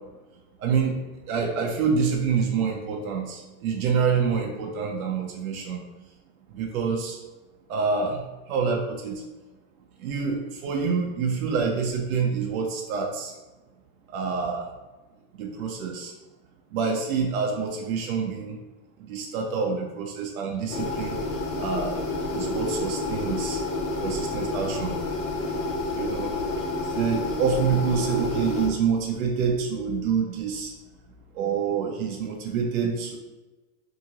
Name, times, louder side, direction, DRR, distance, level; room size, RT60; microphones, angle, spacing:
voice 1, 0.6-1.0 1.3-5.8 6.5-7.2 7.7-8.2 8.5-9.2 10.0-13.3 14.1-14.7 15.3-16.1 16.7-18.6 19.1-21.2 21.6-21.9 22.3-23.6 24.0-24.9 25.9-26.3 26.9-30.7 31.3-33.2, right 5 dB, 65° right, 0 dB, 0.6 m, -27 dB
sound 1, 20.7-28.7, left 2 dB, 60° left, 0.6 m, -29 dB
2.6 x 2.5 x 2.8 m, 1.2 s
supercardioid pair, 180°, 46 cm